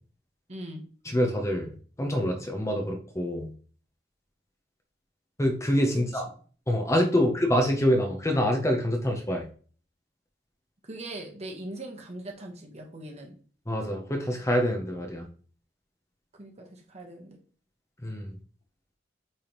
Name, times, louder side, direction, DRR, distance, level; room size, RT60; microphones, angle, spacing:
voice 1, 0.5-0.8 5.9-6.2 7.1-7.3 10.8-13.4 16.3-17.4, right 1 dB, 35° right, 2 dB, 1.2 m, -41 dB
voice 2, 1.1-1.7 2.0-3.5 5.4-6.3 6.7-9.5 13.7-15.3 18.0-18.3, equal, 15° left, 3 dB, 0.8 m, -26 dB
8.8 x 3.5 x 3.0 m, 0.43 s
head